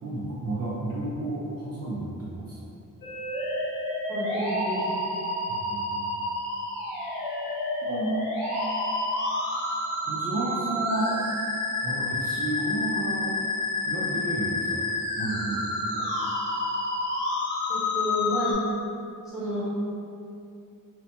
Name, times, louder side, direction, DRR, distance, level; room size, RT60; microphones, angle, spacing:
voice 1, 0.0-2.6 5.5-6.2 7.8-8.3 10.1-11.2 11.8-13.3 13.9-14.9 15.2-16.1, right 2 dB, 50° right, -7 dB, 0.4 m, -31 dB
sound 1, 3.0-18.5, left 2 dB, 80° left, 0.8 m, -29 dB
voice 2, 4.1-5.0 17.7-18.6 19.3-19.7, equal, ahead, -11 dB, 0.9 m, -30 dB
2.8 x 2.0 x 2.7 m, 2.6 s
wide cardioid pair, 135°, 33 cm